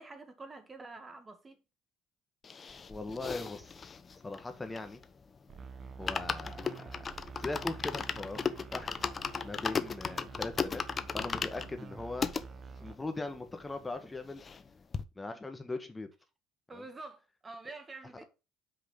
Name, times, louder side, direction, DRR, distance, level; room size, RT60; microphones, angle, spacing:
voice 1, 0.0-1.6 16.7-18.2, right 3 dB, 25° right, 1.6 m, -47 dB
sound 1, 2.4-5.2 5.5-5.6 5.9-12.4 13.0-13.1 13.3-13.4 13.7-14.7 14.9-15.0, left 5 dB, 35° left, 0.7 m, -36 dB
voice 2, 2.9-3.7 4.2-5.0 6.0-7.0 7.4-8.4 8.7-8.9 9.4-10.8 11.1-12.3 12.8-14.4 15.2-16.1 16.7-16.8, left 2 dB, 15° left, 1.3 m, -39 dB
sound 2, 5.5-13.0, right 5 dB, 45° right, 0.8 m, -48 dB
6.1 x 4.9 x 5.1 m
supercardioid pair, 80°, 0 cm